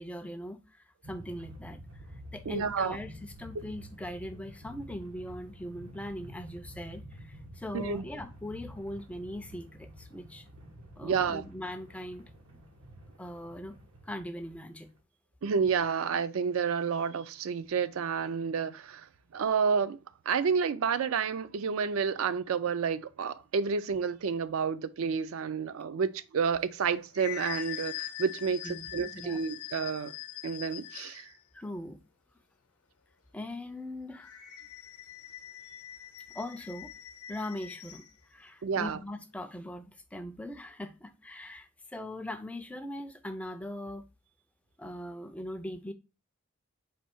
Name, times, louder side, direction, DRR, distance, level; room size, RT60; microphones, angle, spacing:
voice 1, 0.0-1.8 2.3-3.1 3.4-10.5 11.0-12.3 13.2-13.8 14.0-14.9 28.6-29.4 31.5-32.0 33.3-34.3 36.3-36.9 37.3-44.0 44.8-45.9, left 1 dB, 5° left, 0.3 m, -40 dB
sound 1, 1.0-15.0, equal, 85° right, 1.1 m, -49 dB
voice 2, 2.5-3.0 7.7-8.0 11.0-11.5 15.4-19.1 19.3-20.0 20.3-30.1 30.4-31.3 38.6-39.0, right 6 dB, 70° right, 0.4 m, -30 dB
sound 2, 26.6-31.4 34.1-38.1, left 12 dB, 80° left, 0.7 m, -43 dB
4.3 x 2.7 x 4.3 m
head